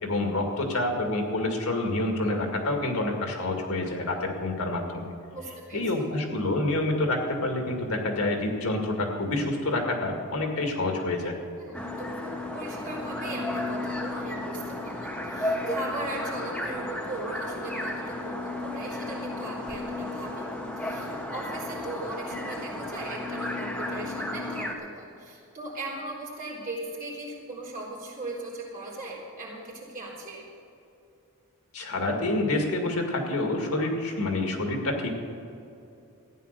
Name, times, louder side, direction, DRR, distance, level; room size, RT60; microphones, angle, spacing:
voice 1, 0.0-5.1 5.7-11.3 31.7-35.1, left 2 dB, 75° left, 3 dB, 2.0 m, -28 dB
voice 2, 5.3-5.8 11.6-30.4, right 2 dB, 40° right, -4 dB, 3.9 m, -38 dB
sound 1, 11.7-24.7, left 1 dB, 5° left, 1.3 m, -33 dB
14.5 x 10.0 x 6.7 m, 2.7 s
head